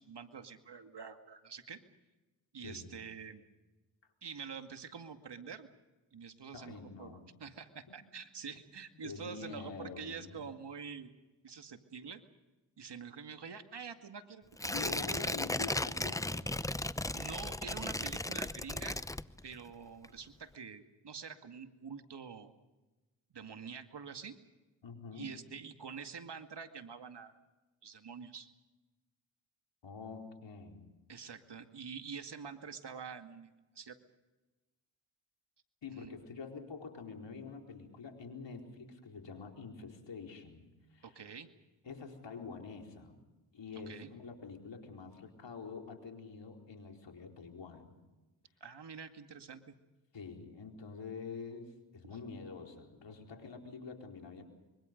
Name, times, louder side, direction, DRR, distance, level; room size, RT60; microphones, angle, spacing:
voice 1, 0.0-1.8 2.5-3.4 4.2-5.7 6.1-11.1 11.4-12.2 12.8-15.9 17.1-19.0 19.4-22.5 23.3-24.4 25.1-27.4 27.8-28.5 31.1-33.5 33.8-34.0 35.9-36.1 41.0-41.5 43.9-44.1 48.6-49.8 52.0-52.1, right 6 dB, 55° right, 7 dB, 2.2 m, -47 dB
voice 2, 2.6-3.0 6.5-7.2 9.0-10.4 14.7-16.8 24.8-25.4 29.8-31.0 35.8-41.2 41.8-43.2 43.5-47.9 50.1-54.4, left 5 dB, 60° left, 3 dB, 4.4 m, -46 dB
Tearing, 14.6-19.7 20.0-20.1, left 1 dB, 5° left, 0.7 m, -36 dB
25.5 x 23.5 x 5.3 m, 1.1 s
supercardioid pair, 45°, 48 cm